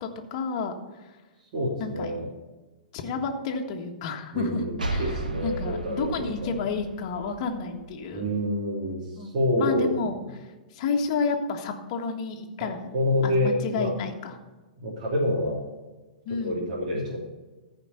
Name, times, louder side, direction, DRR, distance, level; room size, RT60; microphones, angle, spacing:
voice 1, 0.0-1.2 1.8-2.1 2.9-4.6 4.9-5.1 5.4-8.3 9.1-10.2 10.7-12.9 13.2-14.4 16.2-16.6, left 4 dB, 45° left, 3 dB, 1.5 m, -30 dB
voice 2, 1.4-2.3 4.3-6.6 8.1-10.1 12.9-13.9 14.8-15.6 16.4-17.2, left 1 dB, 50° right, -4 dB, 2.9 m, -27 dB
sound 1, 4.8-8.3, right 2 dB, 85° right, 1.4 m, -34 dB
14.5 x 5.2 x 7.0 m, 1.2 s
figure-of-eight pair, 110°, 4 cm